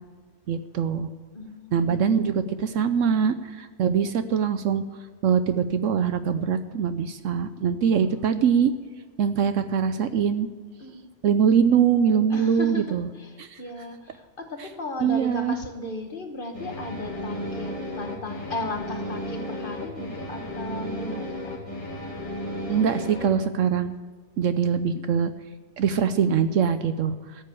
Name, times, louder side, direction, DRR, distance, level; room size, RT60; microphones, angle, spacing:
voice 1, 0.5-1.1 1.7-4.8 5.2-8.7 9.2-10.5 11.2-13.1 13.4-13.6 15.0-15.6 22.7-23.9 24.4-25.3 25.8-27.1, right 7 dB, 65° right, 11 dB, 0.9 m, -23 dB
voice 2, 1.3-2.0 10.8-11.1 12.3-21.5, left 2 dB, 40° left, 5 dB, 1.2 m, -36 dB
sound 1, 16.5-23.3, left 1 dB, 20° left, 2.4 m, -34 dB
14.0 x 7.7 x 8.3 m, 1.4 s
omnidirectional pair, 1.5 m